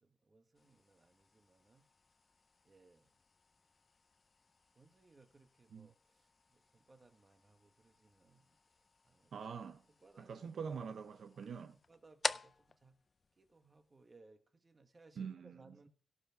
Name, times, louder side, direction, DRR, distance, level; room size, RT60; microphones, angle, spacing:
voice 1, 0.0-1.9 2.6-3.1 4.7-8.6 9.0-9.3 9.6-10.6 11.9-13.0 13.4-15.9, right 3 dB, 30° right, 1.4 m, -65 dB
sound 1, 0.5-14.2, left 4 dB, 35° left, 0.4 m, -49 dB
voice 2, 9.3-9.8 10.2-11.7 15.2-15.7, right 6 dB, 70° right, 0.7 m, -45 dB
17.0 x 5.7 x 4.7 m
wide cardioid pair, 135°, 0 cm